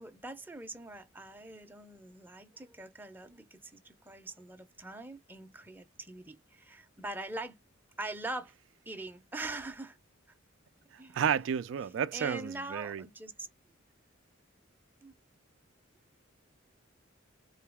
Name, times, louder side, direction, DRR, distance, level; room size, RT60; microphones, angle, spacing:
voice 1, 0.0-7.6 8.0-8.5 8.9-10.0 11.0-11.2 12.1-13.5 15.0-15.2, right 2 dB, 10° right, 0.5 m, -43 dB
voice 2, 10.9-13.0, right 8 dB, 65° right, 0.3 m, -32 dB
3.9 x 2.7 x 3.4 m
head